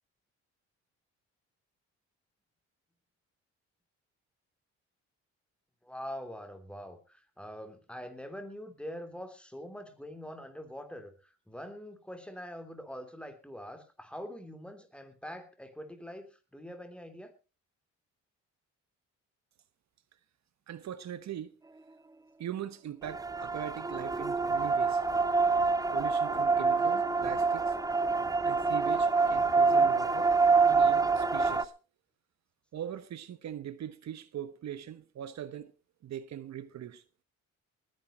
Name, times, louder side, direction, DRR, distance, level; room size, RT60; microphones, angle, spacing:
voice 1, 5.8-17.3 29.8-29.9, equal, 5° left, 3.3 m, -44 dB
voice 2, 20.7-21.5 22.4-25.1 25.9-27.8 28.4-30.3 30.6-31.7 32.7-35.7 36.0-37.0, right 10 dB, 65° right, 1.2 m, -41 dB
sound 1, 23.0-31.6, right 4 dB, 10° right, 0.7 m, -26 dB
19.5 x 10.5 x 4.3 m
cardioid pair, 90°, 30 cm